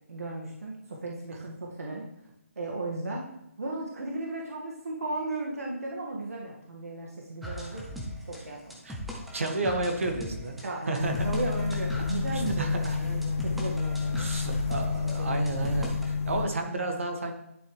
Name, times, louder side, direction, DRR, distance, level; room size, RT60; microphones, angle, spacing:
voice 1, 0.1-2.1 2.6-3.2 3.6-8.8 10.6-14.3 14.8-15.5, right 2 dB, 85° right, -2 dB, 1.8 m, -36 dB
sound 1, 7.4-16.1, left 1 dB, ahead, 0.5 m, -40 dB
voice 2, 9.3-10.6 10.9-11.3 12.3-13.0 14.2-17.3, right 2 dB, 60° right, 4 dB, 1.8 m, -31 dB
sound 2, 11.0-16.5, left 5 dB, 70° left, 1.7 m, -30 dB
10.5 x 6.9 x 3.2 m, 0.83 s
hypercardioid pair, 175°, 8 cm